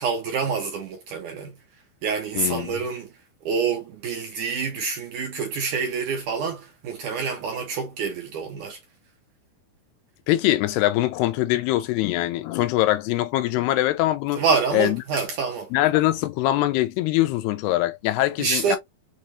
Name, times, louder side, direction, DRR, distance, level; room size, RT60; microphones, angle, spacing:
voice 1, 0.0-1.5 2.0-3.1 3.5-8.8 14.4-15.7 18.4-18.8, right 5 dB, 75° right, 1.9 m, -27 dB
voice 2, 2.4-2.8 10.3-14.4 14.7-15.0 15.7-18.8, left 16 dB, 90° left, 2.7 m, -23 dB
6.6 x 2.6 x 3.0 m
omnidirectional pair, 4.6 m